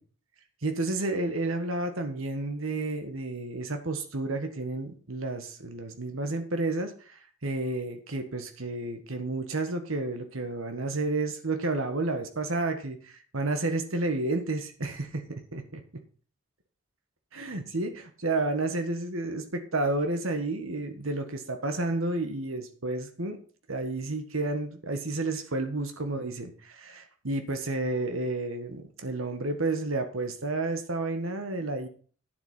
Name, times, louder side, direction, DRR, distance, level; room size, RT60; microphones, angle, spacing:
voice 1, 0.6-15.8 17.3-23.4 23.7-31.9, right 2 dB, 80° right, 6 dB, 1.5 m, -31 dB
9.6 x 7.8 x 5.6 m, 0.43 s
head